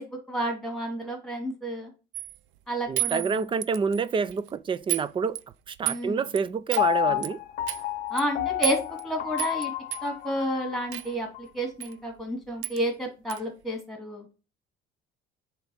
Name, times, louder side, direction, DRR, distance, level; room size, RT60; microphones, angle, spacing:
voice 1, 0.0-1.9 2.7-3.4 5.8-6.2 7.1-7.2 8.1-9.7 10.0-14.3, equal, ahead, 2.5 m, -31 dB
sound 1, 2.1-2.4 3.0-4.0 4.3-4.5 4.9-5.1 5.4-6.0 6.4-6.5 6.7-6.9 7.2-7.3 7.7-7.8 8.2-8.3 8.6-9.0 9.4-9.7 9.9-10.0 10.9-11.1 11.8-11.9 12.2-12.3 12.6-12.8 13.3-13.4, right 18 dB, 75° right, 0.5 m, -31 dB
voice 2, 2.9-5.4 5.7-7.4, right 5 dB, 25° right, 0.5 m, -28 dB
Piano, 6.8-10.9 11.3-11.4, left 15 dB, 50° left, 0.6 m, -30 dB
7.7 x 3.6 x 5.6 m
cardioid pair, 135°, 20 cm